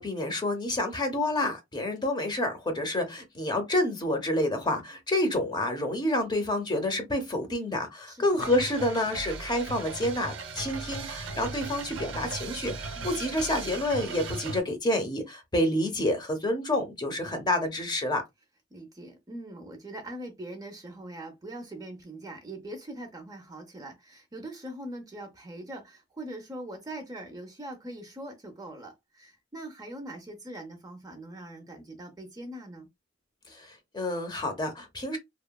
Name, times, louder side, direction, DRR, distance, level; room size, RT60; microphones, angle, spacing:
voice 1, 0.0-18.2 33.5-35.2, left 1 dB, 20° left, 0.6 m, -28 dB
sound 1, 8.4-14.6, right 4 dB, 65° right, 0.5 m, -37 dB
voice 2, 13.0-13.3 18.7-32.9, right 1 dB, 20° right, 0.5 m, -42 dB
2.9 x 2.1 x 2.2 m
head